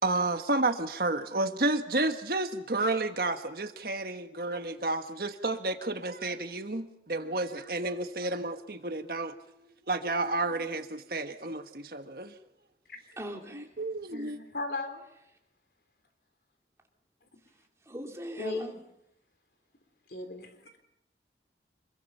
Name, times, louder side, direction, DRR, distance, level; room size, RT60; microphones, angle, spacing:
voice 1, 0.0-9.3 9.9-12.4 13.5-14.4, right 2 dB, 55° right, 1.4 m, -31 dB
voice 2, 13.2-13.7 17.8-18.8, equal, 15° right, 2.8 m, -38 dB
voice 3, 14.1-15.1 18.4-18.7 20.1-20.6, left 2 dB, 65° left, 3.6 m, -38 dB
26.5 x 22.5 x 5.6 m
head